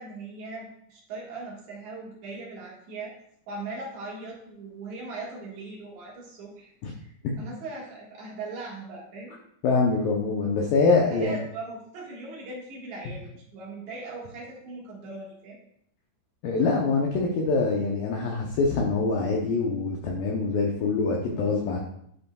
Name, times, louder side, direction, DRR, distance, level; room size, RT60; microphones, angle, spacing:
voice 1, 0.0-3.1 3.5-6.7 7.0-9.4 11.1-15.6, right 3 dB, 60° right, -4 dB, 2.2 m, -39 dB
voice 2, 9.6-11.4 16.4-21.8, left 4 dB, 90° left, 0 dB, 1.9 m, -24 dB
10.5 x 5.3 x 2.3 m, 0.70 s
omnidirectional pair, 5.1 m